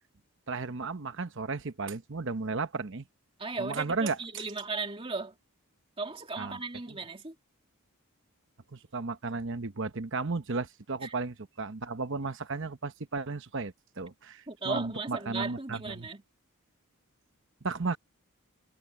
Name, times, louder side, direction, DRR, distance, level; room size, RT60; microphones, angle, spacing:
voice 1, 0.5-3.0 3.6-4.4 6.4-6.6 8.7-16.1 17.6-18.0, right 3 dB, 55° right, 1.0 m, -34 dB
voice 2, 3.4-5.3 6.0-7.3 11.0-11.1 14.5-16.2, right 3 dB, 25° right, 2.3 m, -36 dB
head